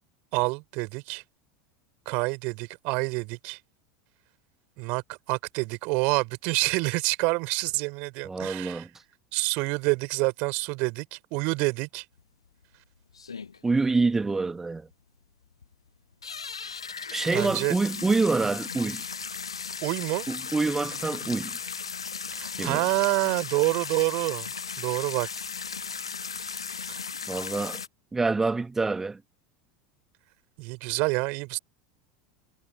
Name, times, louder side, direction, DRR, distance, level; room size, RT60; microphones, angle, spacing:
voice 1, 0.3-1.2 2.0-3.6 4.8-8.9 9.3-12.0 17.3-17.7 19.8-20.3 22.3-24.5 24.8-25.3 26.9-27.0 30.6-31.6, right 29 dB, 50° right, 4.6 m, -27 dB
voice 2, 8.2-8.9 13.6-14.9 17.1-19.0 20.3-21.6 22.5-22.8 27.3-27.8 28.1-29.2, right 3 dB, 15° right, 2.1 m, -26 dB
sound 1, 12.2-12.3 12.6-12.7 13.1-13.8 14.2-14.3 14.4-14.5 14.9-15.0 15.5-15.7 16.1-27.9, left 5 dB, 80° left, 1.6 m, -36 dB
figure-of-eight pair, 80°, 3 cm